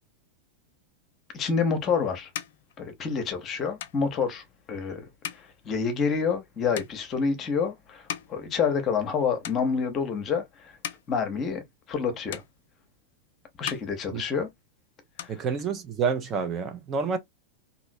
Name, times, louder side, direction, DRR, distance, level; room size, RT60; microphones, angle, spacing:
voice 1, 1.3-2.3 2.8-5.0 5.3-10.8 11.1-11.6 11.9-12.4 13.6-14.5 15.2-15.3, left 6 dB, 30° left, 0.8 m, -28 dB
sound 1, 1.5-9.1 9.4-10.1 10.6-12.0 12.3-13.2 13.5-14.7 15.0-16.1, left 9 dB, 55° left, 0.4 m, -42 dB
voice 2, 15.3-17.2, right 5 dB, 30° right, 0.6 m, -28 dB
2.9 x 2.6 x 2.6 m
figure-of-eight pair, 90°, 0 cm